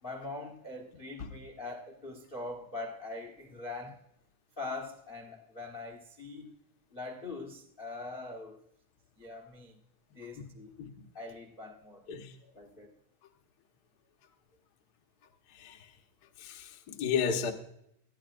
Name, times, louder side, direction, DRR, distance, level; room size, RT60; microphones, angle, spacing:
voice 1, 0.0-4.0 4.6-6.5 6.9-8.6 9.2-9.8 10.1-10.7 11.1-12.1 12.5-12.9, left 3 dB, 60° left, 0.5 m, -42 dB
voice 2, 16.4-17.5, left 6 dB, 90° left, 0.8 m, -32 dB
20.5 x 14.0 x 2.5 m
omnidirectional pair, 3.7 m